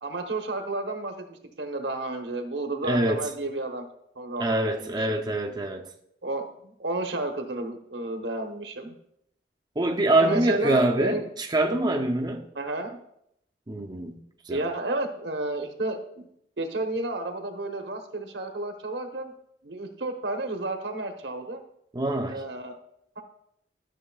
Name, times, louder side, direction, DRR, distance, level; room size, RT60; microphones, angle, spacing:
voice 1, 0.0-3.8 4.1-5.2 6.2-8.9 10.2-11.3 12.5-13.0 14.5-16.2 16.6-19.3 19.6-21.6 22.3-22.8 23.2-23.3, right 2 dB, 80° right, 4 dB, 1.1 m, -32 dB
voice 2, 2.8-3.2 4.4-5.8 9.8-12.5 13.7-14.2 14.5-14.6 21.9-22.4, right 1 dB, 25° right, 1 dB, 0.6 m, -25 dB
12.5 x 6.3 x 2.3 m, 0.74 s
head